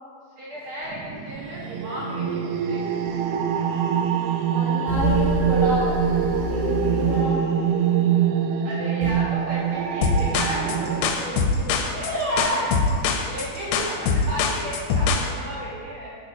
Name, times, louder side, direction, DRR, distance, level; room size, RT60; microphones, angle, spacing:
voice 1, 0.4-2.9 8.6-12.7 13.2-16.1, right 1 dB, 55° right, -6 dB, 1.6 m, -35 dB
sound 1, 0.9-11.1, right 8 dB, 85° right, 2.1 m, -24 dB
sound 2, 3.1-3.2 4.9-7.4 9.0-9.1, left 4 dB, 50° left, 1.3 m, -29 dB
voice 2, 4.5-5.9 6.2-7.4 11.8-12.6, equal, 70° left, -9 dB, 0.7 m, -28 dB
sound 3, 10.0-15.3, left 4 dB, 90° left, 2.2 m, -23 dB
7.9 x 4.0 x 5.9 m, 2.1 s
omnidirectional pair, 3.6 m